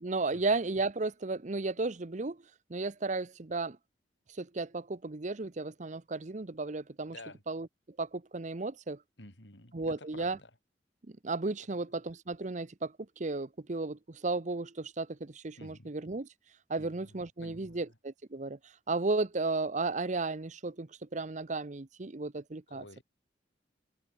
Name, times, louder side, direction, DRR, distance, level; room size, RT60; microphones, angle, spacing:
voice 1, 0.0-2.4 2.7-3.8 4.3-7.2 7.5-7.7 8.0-9.0 9.7-10.4 11.2-16.3 16.7-18.6 18.9-23.0, right 3 dB, 40° right, 0.8 m, -34 dB
voice 2, 7.1-7.4 9.2-10.5 11.7-11.8 15.6-15.9 16.8-18.0 22.7-23.0, left 2 dB, 80° left, 7.3 m, -52 dB
head